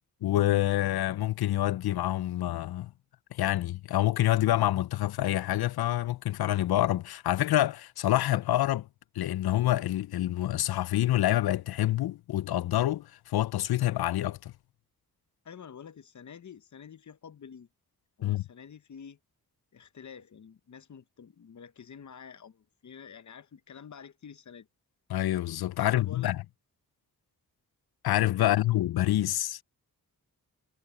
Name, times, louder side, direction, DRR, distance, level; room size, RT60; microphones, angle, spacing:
voice 1, 0.2-2.9 3.3-8.9 9.2-14.5 18.2-18.4 25.1-26.4 28.0-29.6, left 14 dB, 85° left, 0.5 m, -27 dB
voice 2, 15.4-17.7 18.2-19.2 19.7-24.7 26.0-26.3 28.4-28.6, left 7 dB, 50° left, 0.8 m, -48 dB
wide cardioid pair, 100°, 37 cm